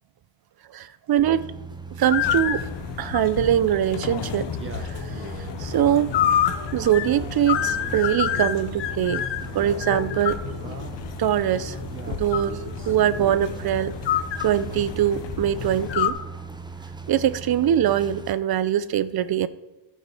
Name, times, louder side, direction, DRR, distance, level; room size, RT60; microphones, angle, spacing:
voice 1, 0.7-1.5 2.0-2.6 3.0-4.5 4.8-5.3 5.6-6.2 6.7-9.2 9.5-10.4 11.2-11.8 12.1-12.6 12.9-13.9 14.4-16.2 17.1-19.5, right 10 dB, 60° right, 16 dB, 0.7 m, -22 dB
sound 1, 1.2-18.3, right 4 dB, 10° right, 0.8 m, -39 dB
sound 2, 2.1-16.1, left 10 dB, 80° left, 0.9 m, -29 dB
Male speech man speaking, 4.4-6.3 6.8-8.8 9.4-11.1 11.8-13.8, right 3 dB, 30° right, 1.3 m, -41 dB
14.0 x 5.5 x 4.9 m, 1.1 s
cardioid pair, 90°, 42 cm